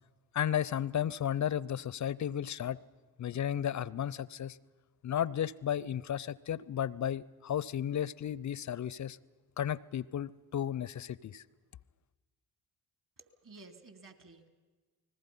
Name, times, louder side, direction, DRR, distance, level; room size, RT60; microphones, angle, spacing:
voice 1, 0.3-2.8 3.2-4.6 5.0-9.2 9.6-11.4, left 10 dB, 35° left, 22 dB, 0.6 m, -34 dB
voice 2, 13.2-14.5, right 3 dB, 40° right, 7 dB, 3.3 m, -54 dB
29.5 x 20.0 x 5.5 m, 1.3 s
hypercardioid pair, 45°, 48 cm